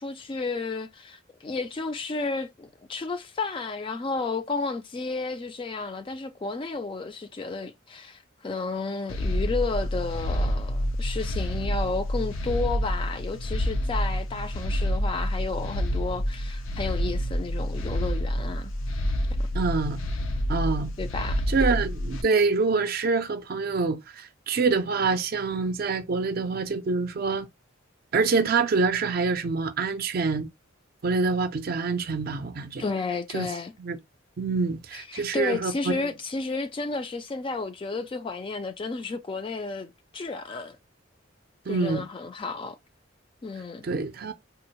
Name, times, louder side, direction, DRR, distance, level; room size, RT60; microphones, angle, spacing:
voice 1, 0.0-18.7 21.0-21.4 32.8-33.7 34.9-40.8 41.7-42.8 43.4-43.9, left 3 dB, 25° left, 0.3 m, -32 dB
sound 1, 9.1-22.2, equal, 85° left, 0.5 m, -28 dB
voice 2, 19.5-20.0 20.5-20.9 21.5-27.5 28.1-30.5 31.0-32.8 33.3-33.5 33.8-34.0 34.4-36.1 41.7-42.0 43.8-44.3, right 4 dB, 50° right, 0.4 m, -26 dB
3.5 x 2.0 x 2.9 m
head